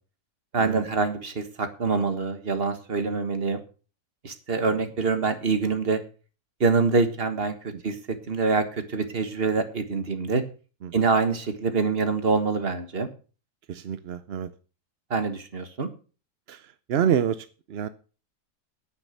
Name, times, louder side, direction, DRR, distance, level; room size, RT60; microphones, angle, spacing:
voice 1, 0.5-3.6 4.2-6.0 6.6-7.5 7.8-10.4 10.9-13.1 15.1-15.9, right 4 dB, 40° right, 1.7 m, -25 dB
voice 2, 13.7-14.5 16.5-16.6 16.9-17.9, right 8 dB, 55° right, 0.7 m, -27 dB
9.9 x 9.2 x 6.7 m
omnidirectional pair, 1.7 m